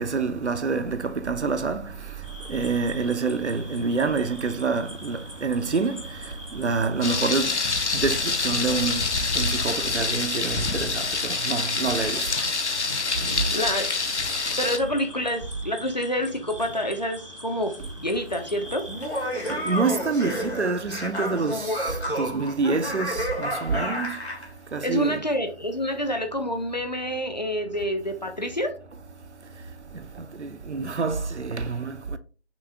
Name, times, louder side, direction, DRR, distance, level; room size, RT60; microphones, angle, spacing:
voice 1, 0.0-1.8 2.5-6.0 6.5-7.5 8.0-9.0 9.4-10.9 11.4-12.3 19.7-21.6 22.2-24.1 24.7-25.2 30.4-32.2, right 4 dB, 85° right, 0.6 m, -26 dB
sound 1, 2.2-19.9, equal, 30° right, 0.6 m, -43 dB
Thunder, 7.0-14.8, left 4 dB, 90° left, 0.7 m, -26 dB
voice 2, 13.5-13.9 14.6-18.9 24.8-28.7, equal, 40° left, 0.6 m, -27 dB
Laughter, 18.9-24.5, equal, 70° left, 1.9 m, -30 dB
6.0 x 2.3 x 3.4 m
figure-of-eight pair, 165°, 34 cm